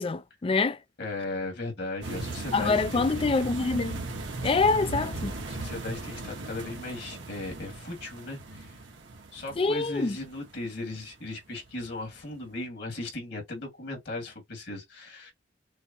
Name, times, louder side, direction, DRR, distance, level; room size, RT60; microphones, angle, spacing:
voice 1, 0.0-0.8 2.5-4.0 4.4-5.4 9.6-10.2, left 4 dB, 30° left, 0.4 m, -25 dB
voice 2, 1.0-3.2 5.5-8.8 9.3-15.3, left 2 dB, 65° left, 2.2 m, -37 dB
sound 1, 2.0-11.1 11.6-11.8 12.1-12.2, right 2 dB, 85° right, 1.3 m, -37 dB
6.3 x 2.2 x 2.9 m
head